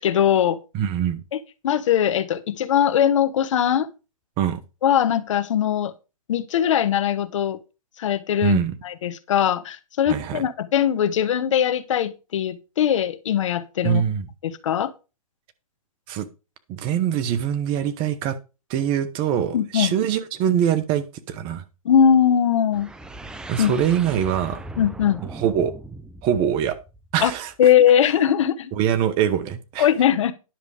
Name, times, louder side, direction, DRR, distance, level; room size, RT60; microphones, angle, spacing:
voice 1, 0.0-0.6 1.3-3.9 4.8-5.9 6.3-7.6 8.0-14.0 14.4-14.9 19.5-20.0 21.8-22.9 23.6-23.7 24.8-25.2 27.2-27.3 27.6-28.7 29.8-30.3, left 9 dB, 55° left, 1.1 m, -20 dB
voice 2, 0.7-1.2 4.4-4.6 8.4-8.7 10.1-10.4 13.8-14.3 16.1-16.3 16.7-18.4 18.7-21.6 23.5-24.6 25.3-25.7 26.2-26.8 27.1-27.5 28.7-29.9, right 9 dB, 30° right, 1.1 m, -23 dB
sound 1, 22.7-27.6, right 2 dB, 5° right, 0.5 m, -39 dB
10.5 x 6.7 x 5.0 m
hypercardioid pair, 135°, 19 cm